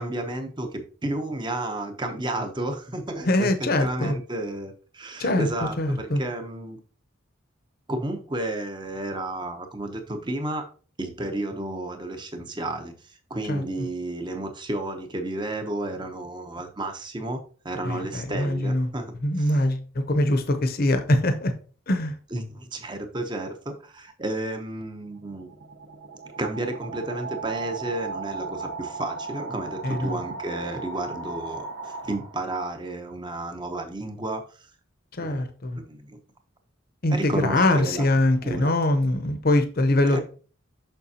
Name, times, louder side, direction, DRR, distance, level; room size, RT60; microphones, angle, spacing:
voice 1, 0.0-6.8 7.9-10.7 11.0-19.6 22.3-25.5 26.4-34.4 35.2-35.4 35.7-36.2 37.1-38.0 38.4-38.7 40.1-40.2, right 2 dB, 20° right, 6 dB, 0.8 m, -32 dB
voice 2, 3.2-4.2 5.2-5.5 5.8-6.2 13.5-13.6 17.8-18.9 19.2-21.5 21.9-22.2 29.8-30.2 35.1-35.8 37.0-40.2, left 1 dB, 45° left, 8 dB, 0.7 m, -23 dB
sound 1, 25.1-32.7, right 4 dB, 60° right, 1.0 m, -36 dB
6.8 x 5.7 x 2.8 m, 0.40 s
head